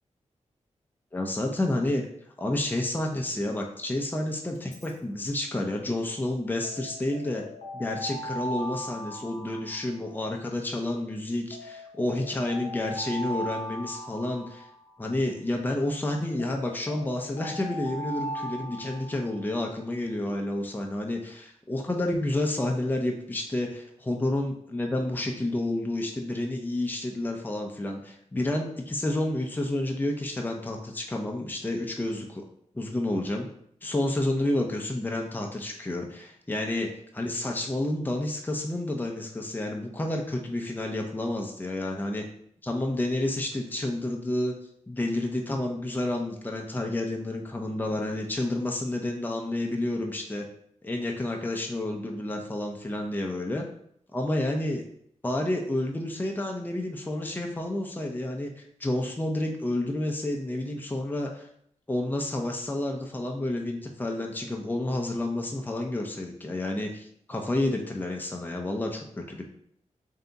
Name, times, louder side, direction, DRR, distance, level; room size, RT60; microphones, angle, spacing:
voice 1, 1.1-2.0 2.4-7.4 7.7-14.7 15.0-32.4 32.7-33.5 33.8-36.9 37.1-42.2 42.6-44.5 44.9-50.4 50.8-53.6 54.1-54.8 55.2-61.5 61.9-69.4, left 1 dB, 15° left, 1 dB, 0.6 m, -30 dB
Alarm, 4.5-4.9 6.6-10.4 11.5-15.3 16.4-19.6, equal, 70° left, 0.8 m, -39 dB
3.4 x 2.7 x 3.9 m, 0.67 s
cardioid pair, 65°, 13 cm